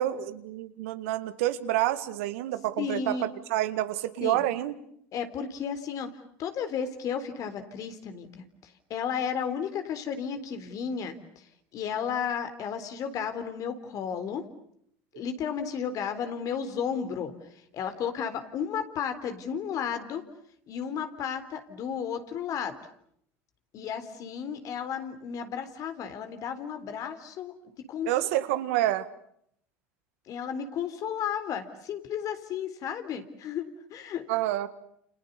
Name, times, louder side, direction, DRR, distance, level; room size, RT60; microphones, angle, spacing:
voice 1, 0.0-4.7 28.1-29.1 34.3-34.7, right 14 dB, 80° right, 11 dB, 1.9 m, -28 dB
voice 2, 2.8-3.4 4.2-4.4 5.1-6.1 6.4-11.4 11.7-14.5 15.2-17.3 17.7-20.3 20.7-22.8 23.7-27.5 27.9-28.5 30.3-34.2, left 7 dB, 50° left, 9 dB, 3.8 m, -33 dB
29.5 x 28.5 x 7.0 m, 0.70 s
hypercardioid pair, 90°, 7 cm